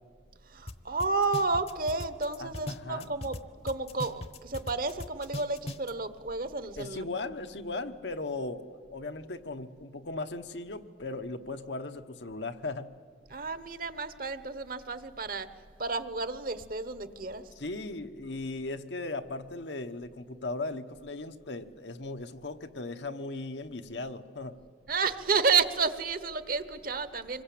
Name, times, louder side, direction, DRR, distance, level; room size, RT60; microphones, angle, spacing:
voice 1, 0.5-3.4 3.6-7.0 13.3-15.5 15.8-17.4 24.9-27.4, right 4 dB, 50° right, 13 dB, 1.1 m, -31 dB
sound 1, 0.7-0.8 1.0-3.4 3.7-5.9, left 1 dB, 35° left, 0.9 m, -38 dB
voice 2, 2.4-3.1 6.8-12.9 17.6-24.6, left 2 dB, 75° left, 7 dB, 1.2 m, -37 dB
26.0 x 22.0 x 8.6 m, 2.2 s
head